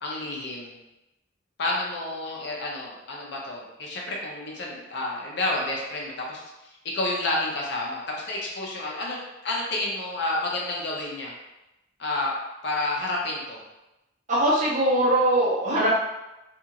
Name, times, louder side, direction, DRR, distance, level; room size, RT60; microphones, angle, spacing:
voice 1, 0.0-0.8 1.6-6.4 6.8-11.3 12.0-12.3 12.6-13.6, left 2 dB, 65° left, -3 dB, 0.6 m, -30 dB
voice 2, 14.3-16.0, right 1 dB, 40° right, -6 dB, 0.8 m, -21 dB
2.5 x 2.4 x 2.9 m, 0.96 s
head